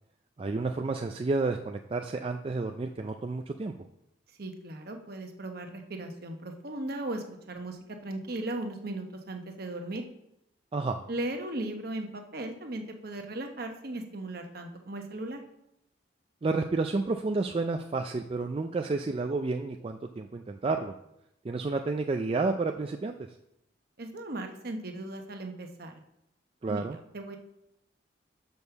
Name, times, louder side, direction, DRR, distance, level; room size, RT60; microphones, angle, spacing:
voice 1, 0.4-3.7 10.7-11.0 16.4-20.9 21.4-23.1 26.6-27.0, right 3 dB, 30° right, 4 dB, 0.3 m, -30 dB
voice 2, 4.4-10.0 11.1-15.4 24.0-26.0 26.6-26.9 27.1-27.4, right 1 dB, 55° right, 4 dB, 1.0 m, -37 dB
6.2 x 5.3 x 6.8 m, 0.82 s
head